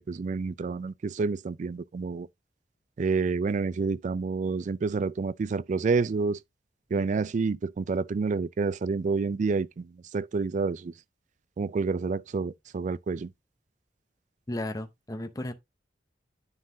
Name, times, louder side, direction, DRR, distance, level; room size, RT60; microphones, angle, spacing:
voice 1, 0.0-2.3 3.0-6.4 6.9-10.9 11.6-13.3, right 4 dB, 45° right, 0.3 m, -29 dB
voice 2, 14.5-15.5, left 1 dB, 20° left, 0.8 m, -34 dB
9.9 x 5.4 x 2.7 m
head